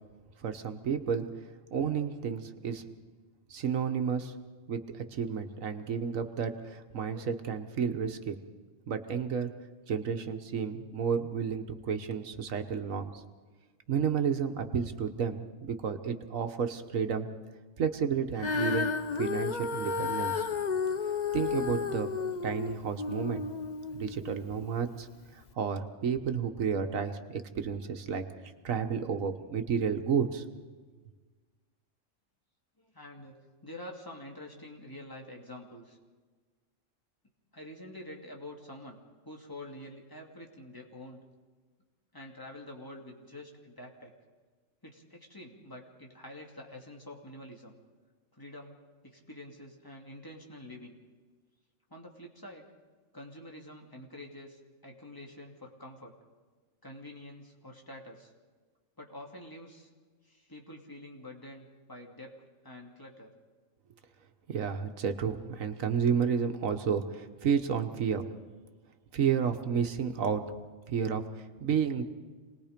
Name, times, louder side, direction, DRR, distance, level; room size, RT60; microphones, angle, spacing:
voice 1, 0.4-1.3 1.7-2.8 3.5-4.3 4.7-8.4 8.9-9.5 9.9-13.2 13.9-17.3 17.8-18.9 19.2-20.5 21.3-22.1 22.4-23.4 23.9-25.1 25.6-28.2 28.6-30.4 64.5-68.2 69.1-70.4 70.9-72.0, right 7 dB, 85° right, 7 dB, 1.6 m, -31 dB
Female singing, 18.4-24.7 25.4-25.5, left 5 dB, 40° left, 0.9 m, -32 dB
voice 2, 32.8-33.3 33.6-36.0 37.5-39.0 39.2-41.2 42.1-44.1 44.8-47.8 48.4-48.8 49.0-51.0 51.9-52.7 53.1-56.2 56.8-58.3 59.0-59.9 60.2-62.3 62.6-63.3, left 1 dB, 15° left, 0 dB, 2.5 m, -47 dB
27.5 x 20.0 x 5.2 m, 1.4 s
omnidirectional pair, 1.3 m